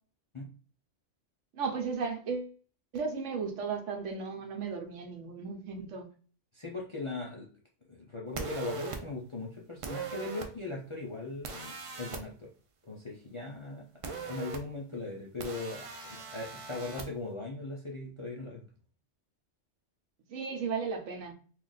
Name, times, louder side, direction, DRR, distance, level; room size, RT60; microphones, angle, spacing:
voice 1, 1.5-2.6 2.9-6.1 20.3-21.3, right 5 dB, 75° right, 1.0 m, -35 dB
voice 2, 6.5-7.5 7.9-12.5 12.8-18.6, left 2 dB, 40° left, 0.4 m, -39 dB
sound 1, 8.3-9.0 9.8-10.5 11.4-12.2 14.0-14.6 15.4-17.0, right 4 dB, 60° right, 0.3 m, -39 dB
3.0 x 2.5 x 3.8 m
omnidirectional pair, 1.3 m